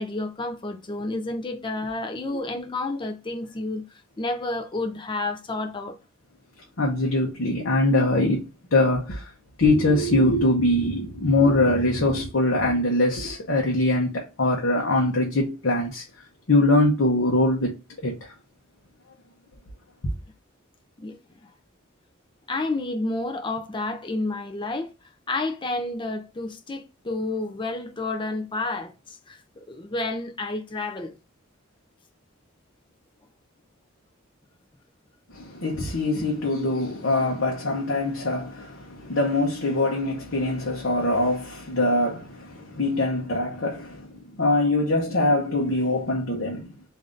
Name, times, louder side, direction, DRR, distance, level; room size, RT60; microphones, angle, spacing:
voice 1, 0.0-3.8 4.2-6.0 21.0-21.5 22.5-24.9 25.3-31.1, left 2 dB, 25° left, 0.5 m, -30 dB
voice 2, 6.8-8.5 8.7-9.3 9.6-16.0 16.5-17.7 18.0-18.3 35.3-46.7, left 2 dB, 60° left, 0.8 m, -23 dB
3.6 x 2.6 x 3.7 m
head